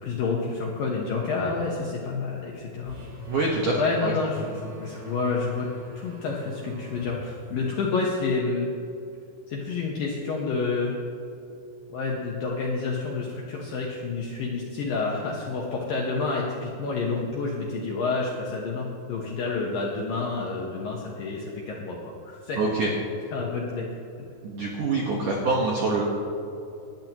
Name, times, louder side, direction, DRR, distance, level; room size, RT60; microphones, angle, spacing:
voice 1, 0.0-3.0 3.8-5.7 6.0-8.7 9.5-10.9 11.9-22.0 22.2-22.6 23.3-23.9 24.2-24.3, left 4 dB, 80° left, -2 dB, 2.0 m, -29 dB
sound 1, 2.8-8.2, equal, 55° right, 5.6 m, -43 dB
voice 2, 3.3-4.5 22.6-22.9 24.4-26.0, right 2 dB, 75° right, -2 dB, 1.9 m, -25 dB
20.0 x 12.5 x 3.0 m, 2.6 s
omnidirectional pair, 5.8 m